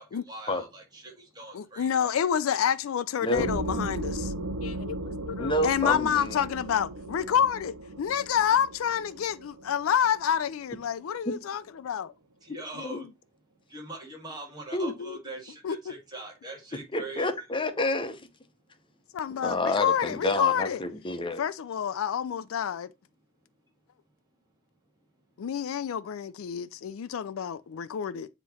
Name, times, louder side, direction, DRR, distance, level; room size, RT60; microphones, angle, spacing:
voice 1, 0.0-2.1 12.4-13.0 13.7-17.3, right 2 dB, 20° right, 1.8 m, -42 dB
voice 2, 1.5-4.3 4.6-12.1 12.8-13.1 15.0-15.2 15.6-15.8 19.1-20.8 21.4-22.9 25.4-28.3, left 8 dB, 80° left, 0.4 m, -28 dB
sound 1, 3.3-10.7, right 1 dB, 90° right, 0.7 m, -36 dB
voice 3, 5.4-6.4 11.3-11.4 12.8-13.1 14.7-14.9 16.9-18.2 19.3-21.4, left 1 dB, 25° left, 0.8 m, -29 dB
7.5 x 3.0 x 4.2 m
head